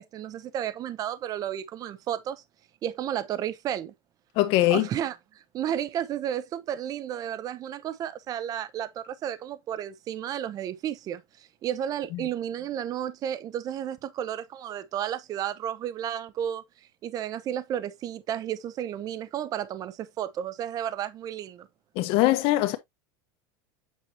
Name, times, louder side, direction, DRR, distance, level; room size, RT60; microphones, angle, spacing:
voice 1, 0.0-2.4 2.8-3.9 4.7-16.6 17.0-21.7, right 10 dB, 35° right, 0.7 m, -32 dB
voice 2, 4.4-4.9 22.0-22.8, left 16 dB, 55° left, 1.3 m, -22 dB
8.4 x 4.6 x 2.9 m
supercardioid pair, 145°, 12 cm